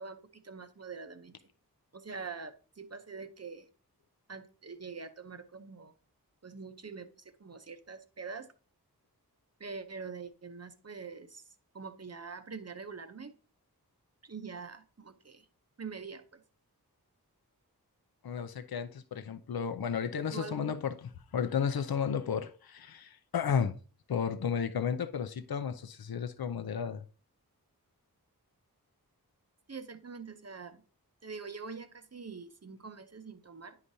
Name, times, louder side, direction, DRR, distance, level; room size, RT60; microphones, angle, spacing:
voice 1, 0.0-1.4 1.9-3.7 4.3-5.9 6.4-8.5 9.6-11.5 11.7-13.4 14.2-15.5 15.8-16.4 20.3-20.7 29.7-30.8 31.2-33.8, right 5 dB, 45° right, 9 dB, 0.8 m, -44 dB
voice 2, 18.2-23.7 24.1-27.0, left 7 dB, 75° left, 10 dB, 0.6 m, -33 dB
9.9 x 4.9 x 2.7 m, 0.38 s
wide cardioid pair, 50°, 37 cm